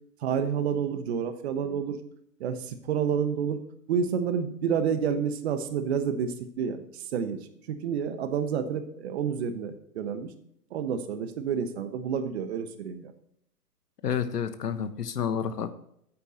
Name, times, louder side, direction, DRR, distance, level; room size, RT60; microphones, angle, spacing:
voice 1, 0.2-2.0 2.4-3.6 3.9-7.4 7.7-10.3 10.7-13.1, right 7 dB, 40° right, 10 dB, 1.2 m, -29 dB
voice 2, 14.0-15.7, left 8 dB, 75° left, 11 dB, 1.2 m, -29 dB
9.3 x 8.7 x 4.3 m, 0.71 s
hypercardioid pair, 135°, 48 cm